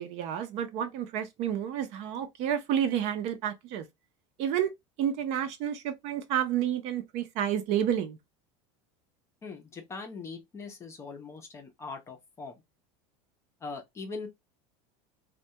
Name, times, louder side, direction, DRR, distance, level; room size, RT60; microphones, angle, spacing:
voice 1, 0.0-3.8 4.4-4.7 5.0-8.2, right 9 dB, 45° right, 0.5 m, -30 dB
voice 2, 9.4-12.6 13.6-14.3, left 4 dB, 20° left, 0.5 m, -41 dB
2.2 x 2.2 x 2.7 m
supercardioid pair, 160°, 15 cm